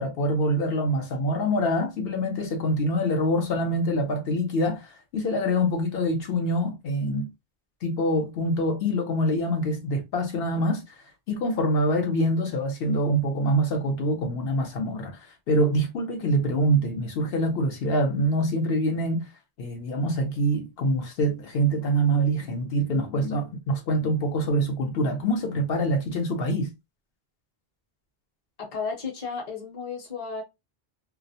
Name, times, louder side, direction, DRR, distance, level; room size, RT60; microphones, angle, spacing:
voice 1, 0.0-7.3 7.8-10.8 11.3-19.3 19.6-26.7, equal, 75° left, 0.8 m, -25 dB
voice 2, 28.6-30.4, left 5 dB, 40° left, 0.8 m, -33 dB
2.3 x 2.0 x 2.6 m
omnidirectional pair, 1.0 m